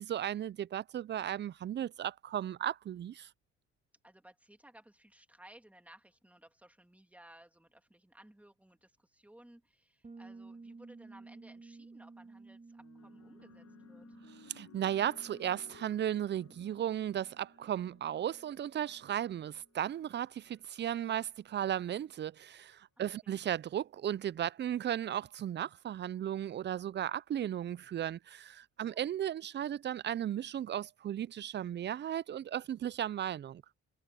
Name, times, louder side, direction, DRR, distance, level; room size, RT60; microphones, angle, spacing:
voice 1, 0.0-3.3 14.5-33.6, right 10 dB, 40° right, 0.4 m, -35 dB
voice 2, 4.0-14.2 23.0-23.3 28.8-29.1, right 1 dB, 5° right, 3.0 m, -59 dB
Bass guitar, 10.0-19.7, right 3 dB, 20° right, 3.2 m, -55 dB
sound 1, 12.8-21.4 22.3-22.6, left 8 dB, 55° left, 7.3 m, -61 dB
cardioid pair, 90°, 30 cm